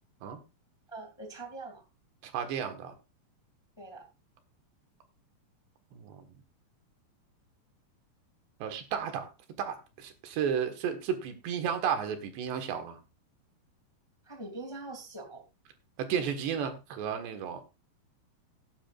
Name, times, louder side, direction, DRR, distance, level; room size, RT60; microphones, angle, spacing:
voice 1, 0.9-1.8 3.8-4.1 14.2-15.4, right 2 dB, 10° left, 3 dB, 1.4 m, -43 dB
voice 2, 2.2-2.9 5.9-6.2 8.6-9.3 9.6-13.0 16.0-17.6, right 8 dB, 85° right, 6 dB, 3.9 m, -33 dB
18.0 x 9.9 x 2.5 m, 0.26 s
omnidirectional pair, 4.8 m